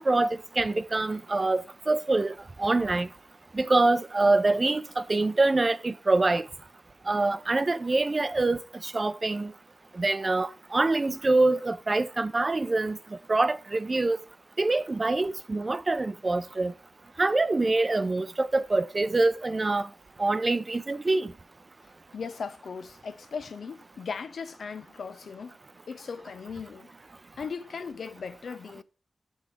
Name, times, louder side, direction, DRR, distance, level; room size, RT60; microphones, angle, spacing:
voice 1, 0.0-3.1 3.5-6.5 7.1-9.5 10.0-13.0 13.3-14.2 14.6-16.7 17.2-19.9 20.2-21.3, right 2 dB, 35° right, 0.6 m, -25 dB
voice 2, 22.1-25.6 25.9-26.9 27.4-28.8, left 5 dB, 80° left, 0.6 m, -38 dB
7.1 x 6.3 x 5.0 m
wide cardioid pair, 80°, 0 cm